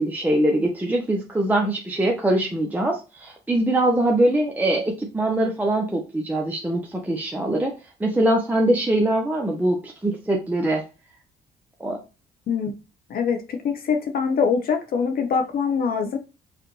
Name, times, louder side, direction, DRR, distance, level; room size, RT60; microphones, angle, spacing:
voice 1, 0.0-7.7 8.0-10.8 11.8-12.0, right 1 dB, 10° right, 0 dB, 0.7 m, -22 dB
voice 2, 13.1-16.2, left 6 dB, 55° left, 5 dB, 0.8 m, -23 dB
4.8 x 2.4 x 3.1 m, 0.30 s
cardioid pair, 100°, 18 cm